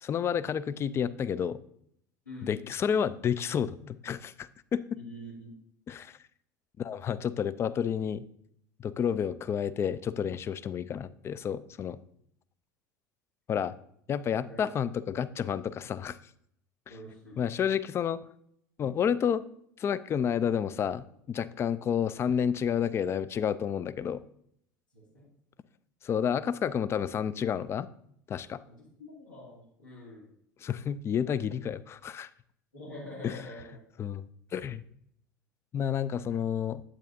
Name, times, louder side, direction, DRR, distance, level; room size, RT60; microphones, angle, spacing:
voice 1, 0.0-1.6 2.5-4.8 5.9-6.2 6.8-8.2 8.8-12.0 13.5-13.7 14.1-16.2 16.9-17.0 17.4-18.2 18.8-19.4 19.8-24.2 26.0-27.9 28.3-28.6 30.6-32.3 33.2-33.4 34.0-34.3 34.5-34.8 35.7-36.8, left 8 dB, 25° left, 15 dB, 0.3 m, -30 dB
voice 2, 4.9-5.5 14.5-14.7 16.9-17.4 24.9-25.2 28.7-30.2 32.7-33.8, left 1 dB, 85° left, -7 dB, 2.5 m, -45 dB
8.9 x 8.1 x 2.6 m, 0.69 s
figure-of-eight pair, 70°, 10 cm